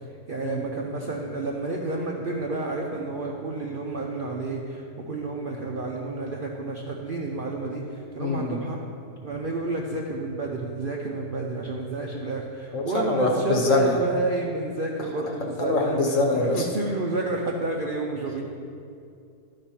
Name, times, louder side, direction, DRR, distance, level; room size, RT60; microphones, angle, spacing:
voice 1, 0.3-8.8 9.2-16.0 16.3-18.4, right 2 dB, 55° right, -1 dB, 0.6 m, -30 dB
voice 2, 8.2-8.6 12.7-14.0 15.6-16.7, left 2 dB, 55° left, 1 dB, 1.3 m, -24 dB
11.5 x 5.4 x 4.4 m, 2.5 s
omnidirectional pair, 1.7 m